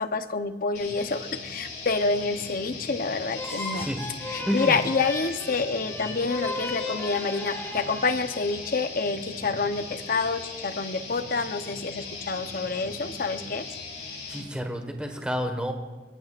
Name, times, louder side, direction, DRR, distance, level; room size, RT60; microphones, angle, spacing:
voice 1, 0.0-3.9 4.3-13.7, left 4 dB, 50° left, 9 dB, 0.8 m, -28 dB
sound 1, 0.7-14.5, left 3 dB, 85° left, 5.8 m, -39 dB
sound 2, 3.3-8.8, left 2 dB, 15° left, 2.4 m, -36 dB
voice 2, 3.7-4.1 4.5-4.8 14.3-15.7, equal, 5° right, 4 dB, 1.5 m, -29 dB
22.5 x 22.5 x 2.5 m, 1.3 s
head